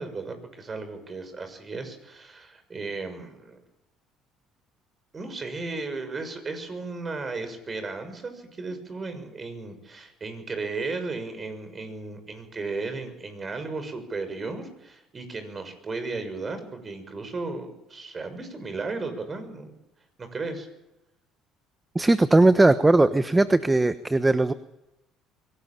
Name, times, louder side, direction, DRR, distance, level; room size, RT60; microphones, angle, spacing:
voice 1, 0.0-3.6 5.1-19.8 20.2-20.7, right 3 dB, 35° right, 9 dB, 6.6 m, -35 dB
voice 2, 21.9-24.5, right 2 dB, 15° right, 12 dB, 1.1 m, -19 dB
23.0 x 18.5 x 8.9 m, 0.95 s
supercardioid pair, 70°, 0 cm